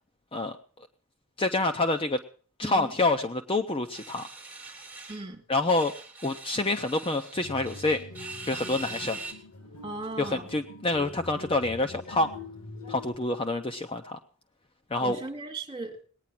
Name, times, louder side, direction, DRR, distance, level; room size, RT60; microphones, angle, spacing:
voice 1, 1.4-2.2 2.6-4.3 5.5-5.9 6.2-8.0 8.4-9.2 10.2-12.3 12.9-14.2 14.9-15.2, left 2 dB, 25° left, 7 dB, 0.6 m, -27 dB
voice 2, 2.6-2.9 5.1-5.4 9.8-10.5 15.0-16.0, right 2 dB, 25° right, 3 dB, 2.4 m, -37 dB
sound 1, 3.9-5.2 5.7-9.3, right 3 dB, 5° right, 2.6 m, -42 dB
sound 2, 7.3-13.2, left 2 dB, 80° left, 2.0 m, -44 dB
19.5 x 9.5 x 6.0 m, 0.44 s
head